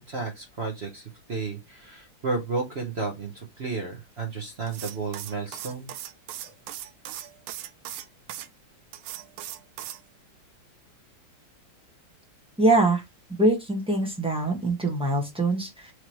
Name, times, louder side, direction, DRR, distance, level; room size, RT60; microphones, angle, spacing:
voice 1, 0.0-5.9, right 4 dB, 55° right, 0.7 m, -32 dB
sound 1, 4.7-8.5 8.9-10.0, right 12 dB, 80° right, 1.4 m, -38 dB
voice 2, 12.6-13.0 13.4-15.9, right 2 dB, 5° right, 0.6 m, -23 dB
4.7 x 3.1 x 3.0 m
omnidirectional pair, 2.3 m